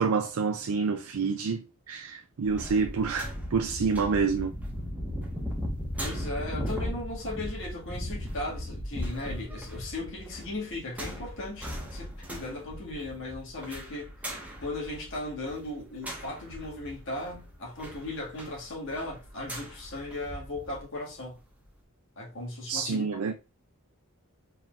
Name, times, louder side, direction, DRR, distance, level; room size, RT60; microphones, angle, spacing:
voice 1, 0.0-4.5 22.7-23.3, right 5 dB, 80° right, 0.5 m, -28 dB
sound 1, 2.4-20.8 21.2-21.3, equal, 5° right, 1.0 m, -38 dB
voice 2, 6.0-14.1 14.6-21.4 22.2-23.2, left 2 dB, 60° left, 1.9 m, -37 dB
4.4 x 3.8 x 2.4 m
head